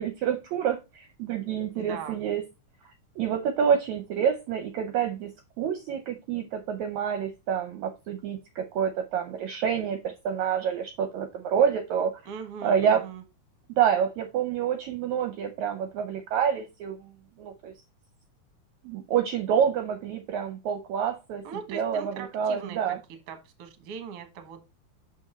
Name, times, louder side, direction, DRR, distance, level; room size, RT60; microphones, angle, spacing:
voice 1, 0.0-2.4 3.2-5.3 5.6-12.1 12.6-13.0 13.8-17.1 17.4-17.7 18.8-21.4 21.7-23.0, right 8 dB, 75° right, 6 dB, 1.9 m, -27 dB
voice 2, 1.8-2.2 12.3-13.2 21.4-23.0 23.3-24.6, right 7 dB, 60° right, 7 dB, 1.8 m, -40 dB
6.2 x 5.2 x 4.2 m, 0.26 s
omnidirectional pair, 3.7 m